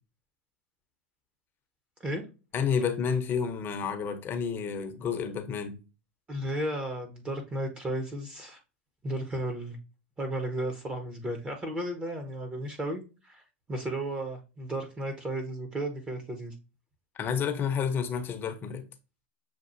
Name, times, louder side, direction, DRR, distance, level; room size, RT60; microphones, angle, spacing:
voice 1, 2.5-5.8 17.2-18.9, left 6 dB, 35° left, 0.8 m, -30 dB
voice 2, 6.3-8.6 9.0-9.8 10.2-13.4 13.7-16.5, right 1 dB, 20° right, 0.9 m, -34 dB
6.7 x 2.4 x 2.6 m
hypercardioid pair, 110°, 6 cm